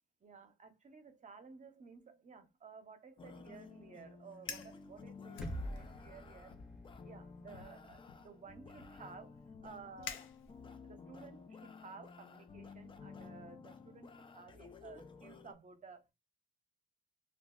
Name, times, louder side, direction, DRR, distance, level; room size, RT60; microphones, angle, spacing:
voice 1, 0.2-6.5 7.0-10.2 10.8-16.1, right 5 dB, 40° right, 0.7 m, -55 dB
sound 1, 3.2-15.5, left 5 dB, 25° left, 0.4 m, -54 dB
Fire, 4.3-4.8 5.3-6.1 6.5-6.8 7.5-10.9, left 7 dB, 80° left, 0.5 m, -49 dB
sound 2, 5.4-9.3, equal, ahead, 0.8 m, -48 dB
2.4 x 2.0 x 3.7 m
cardioid pair, 90°, 20 cm